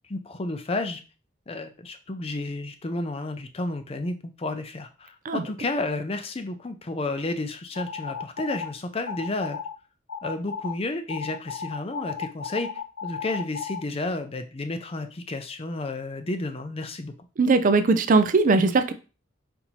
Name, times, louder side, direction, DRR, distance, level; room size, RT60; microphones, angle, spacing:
voice 1, 0.1-1.0 1.5-9.6 10.2-12.7 13.0-17.1, left 2 dB, 30° left, 8 dB, 0.5 m, -31 dB
sound 1, 7.7-8.7 9.1-9.7 10.1-10.7 11.1-13.8, left 6 dB, 80° left, 0.6 m, -34 dB
voice 2, 17.4-18.9, right 3 dB, 40° right, 10 dB, 0.4 m, -20 dB
4.4 x 2.7 x 4.1 m, 0.33 s
head